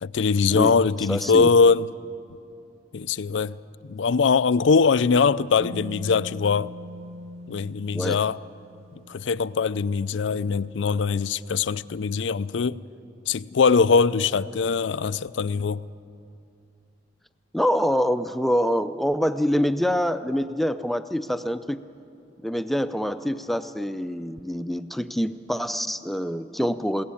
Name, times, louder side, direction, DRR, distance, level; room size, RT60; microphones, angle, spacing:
voice 1, 0.0-1.9 2.9-3.6 3.8-6.7 7.5-8.4 9.1-12.8 13.3-15.8, left 5 dB, 85° left, 0.5 m, -22 dB
voice 2, 1.1-1.5 7.9-8.2 17.5-21.8 22.4-27.0, equal, ahead, 0.5 m, -25 dB
sound 1, 5.6-9.4, left 1 dB, 35° right, 1.2 m, -42 dB
22.0 x 17.5 x 8.5 m
head